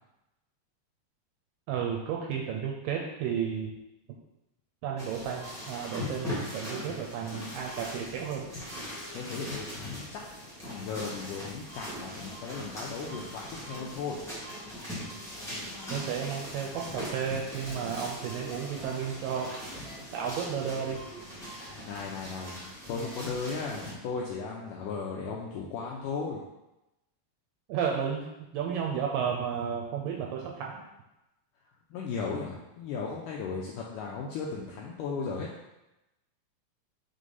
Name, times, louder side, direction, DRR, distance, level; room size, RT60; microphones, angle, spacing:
voice 1, 1.7-3.7 4.8-8.5 15.9-19.6 20.1-21.0 27.7-28.3 28.5-30.9, right 7 dB, 80° right, 0 dB, 2.1 m, -33 dB
sound 1, 5.0-23.9, equal, 5° left, 0.5 m, -40 dB
voice 2, 9.1-10.2 10.7-14.2 21.4-26.4 31.9-35.5, left 5 dB, 85° left, -2 dB, 1.9 m, -36 dB
6.4 x 3.4 x 5.4 m, 0.95 s
omnidirectional pair, 4.4 m